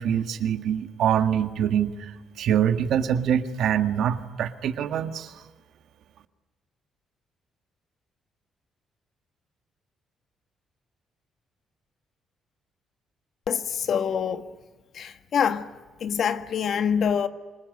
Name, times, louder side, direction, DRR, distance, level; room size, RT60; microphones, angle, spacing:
voice 1, 0.0-5.3, right 9 dB, 75° right, 1.7 m, -25 dB
voice 2, 13.5-14.5 14.9-15.7 16.0-17.3, left 7 dB, 60° left, 1.6 m, -25 dB
27.0 x 21.0 x 9.6 m
cardioid pair, 90°, 0 cm